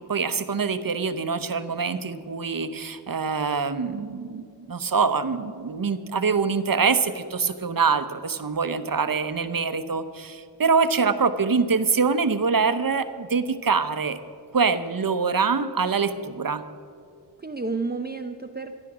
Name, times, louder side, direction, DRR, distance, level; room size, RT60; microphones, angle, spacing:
voice 1, 0.1-14.2 14.5-16.6, right 5 dB, 50° right, 11 dB, 0.8 m, -24 dB
voice 2, 11.4-11.8 17.4-18.8, right 3 dB, 20° right, 6 dB, 0.6 m, -32 dB
13.5 x 9.9 x 6.1 m, 2.3 s
wide cardioid pair, 60°, 44 cm